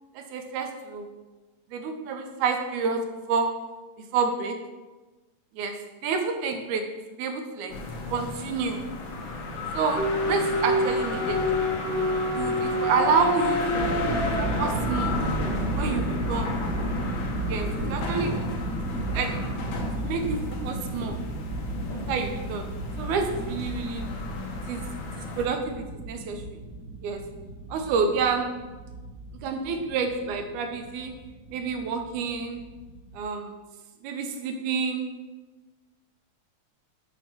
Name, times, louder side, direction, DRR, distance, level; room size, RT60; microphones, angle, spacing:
voice 1, 0.2-1.1 1.7-3.7 4.1-4.7 5.6-7.8 8.1-8.9 9.7-11.4 12.3-13.9 14.4-15.2 15.8-16.6 17.5-18.5 18.9-19.5 20.0-21.2 22.1-22.7 23.0-24.1 24.7-24.9 25.2-26.6 27.0-27.3 27.7-28.6 29.4-31.2 31.5-32.6 33.1-33.6 34.0-35.2, right 5 dB, 85° right, 6 dB, 2.1 m, -29 dB
sound 1, 7.7-25.5, left 3 dB, 85° left, 2.4 m, -34 dB
sound 2, 10.0-15.2, left 1 dB, 5° right, 0.9 m, -27 dB
sound 3, 13.6-33.2, right 1 dB, 55° right, 1.3 m, -33 dB
7.2 x 2.9 x 5.6 m, 1.2 s
omnidirectional pair, 3.4 m